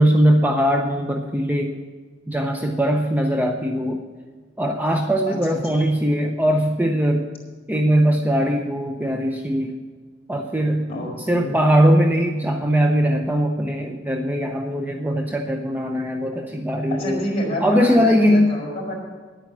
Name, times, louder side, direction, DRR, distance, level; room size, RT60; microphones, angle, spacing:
voice 1, 0.0-1.8 2.3-4.0 4.6-7.3 7.7-9.7 10.3-10.9 11.3-17.2 17.6-18.5, equal, 10° right, 3 dB, 0.6 m, -20 dB
voice 2, 5.3-5.8 10.9-11.5 16.9-18.9, equal, 30° left, -3 dB, 4.8 m, -29 dB
10.5 x 9.1 x 7.2 m, 1.4 s
head